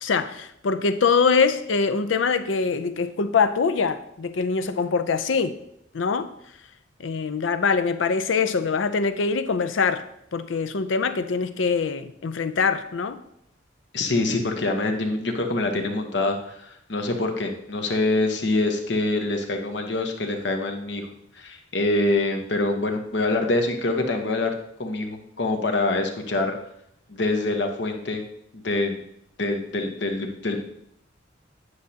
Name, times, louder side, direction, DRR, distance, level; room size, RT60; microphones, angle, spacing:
voice 1, 0.0-5.6 5.9-6.3 7.0-10.0 10.3-13.2, left 5 dB, 85° left, 11 dB, 0.5 m, -23 dB
voice 2, 13.9-24.5 24.8-26.6 27.1-28.2 28.5-29.0 29.4-30.6, left 2 dB, 65° left, 4 dB, 1.0 m, -25 dB
9.5 x 6.4 x 2.8 m, 0.74 s
head